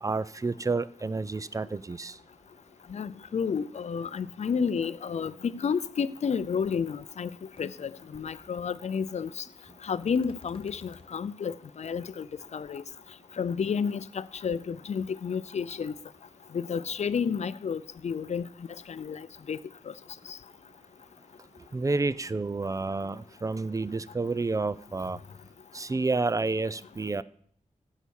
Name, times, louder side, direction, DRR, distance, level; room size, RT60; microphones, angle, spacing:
voice 1, 0.0-2.2 21.7-25.2 25.7-27.2, right 3 dB, 25° right, 0.4 m, -30 dB
voice 2, 2.9-7.3 7.6-9.4 9.8-12.3 12.5-12.8 13.4-15.9 16.5-18.5 18.9-19.6 20.3-20.4, left 6 dB, 60° left, 0.5 m, -31 dB
sound 1, 6.6-6.7 7.0-7.3 7.6-7.7 10.0-11.1, left 4 dB, 45° left, 1.0 m, -52 dB
15.0 x 5.7 x 6.4 m
wide cardioid pair, 110°, 13 cm